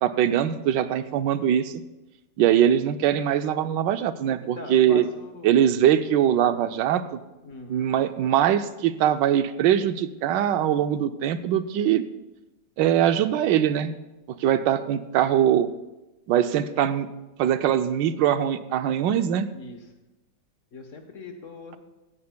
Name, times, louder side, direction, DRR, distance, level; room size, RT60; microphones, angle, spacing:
voice 1, 0.0-1.8 2.4-5.0 5.4-7.2 7.7-12.1 12.8-13.9 14.4-15.7 16.3-17.1 17.4-19.5, right 10 dB, 85° right, 10 dB, 1.3 m, -22 dB
voice 2, 4.4-5.5 7.4-7.9 19.5-19.9 20.7-21.8, left 3 dB, 50° left, 5 dB, 1.3 m, -41 dB
16.5 x 14.0 x 2.2 m, 1.0 s
omnidirectional pair, 1.9 m